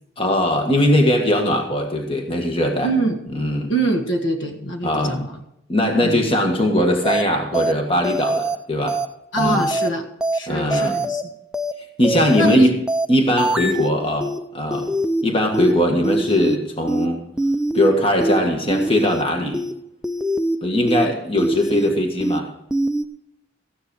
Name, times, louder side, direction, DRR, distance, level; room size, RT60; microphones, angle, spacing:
voice 1, 0.2-2.9 3.3-3.7 4.8-5.2 5.7-9.0 9.4-9.6 10.5-11.0 12.0-12.8 13.1-14.9 15.2-17.2 17.7-19.7 20.6-22.5, left 1 dB, 25° left, 3 dB, 1.6 m, -20 dB
voice 2, 2.8-3.2 3.7-5.3 6.0-6.2 9.3-10.0 10.3-11.3 12.3-12.7 13.6-13.8, right 1 dB, 70° left, 4 dB, 1.7 m, -24 dB
sound 1, 7.0-7.2 7.5-7.7 8.0-8.6 8.9-9.1 9.4-9.9 10.2-10.4 10.7-11.2 11.5-11.7 12.0-12.6 12.9-13.1 13.4-13.9 14.2-14.4 14.7-15.2 15.5-15.7 16.0-16.6 16.9-17.1 17.4-17.9 18.2-18.4 18.7-19.2 19.5-19.7 20.0-20.6 20.9-21.1 21.4-21.9 22.2-22.4 22.7-23.0, right 1 dB, 5° right, 0.4 m, -23 dB
14.5 x 9.8 x 4.8 m, 0.80 s
head